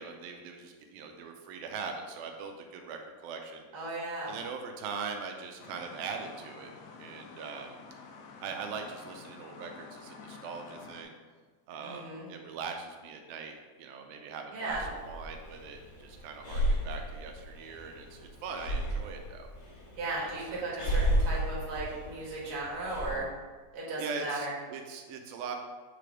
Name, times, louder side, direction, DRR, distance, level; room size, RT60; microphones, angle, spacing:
voice 1, 0.0-6.7 7.0-7.8 8.4-11.2 11.7-19.5 20.2-20.6 24.0-25.6, right 5 dB, 85° right, 3 dB, 2.4 m, -41 dB
voice 2, 3.7-4.3 11.8-12.3 14.5-14.8 20.0-23.3 23.7-24.5, right 2 dB, 50° right, -6 dB, 2.1 m, -36 dB
sound 1, 5.6-11.0, left 5 dB, 90° left, 2.5 m, -49 dB
Breathing, 14.7-23.2, equal, 50° left, 2.0 m, -33 dB
6.7 x 3.3 x 5.0 m, 1.4 s
omnidirectional pair, 4.1 m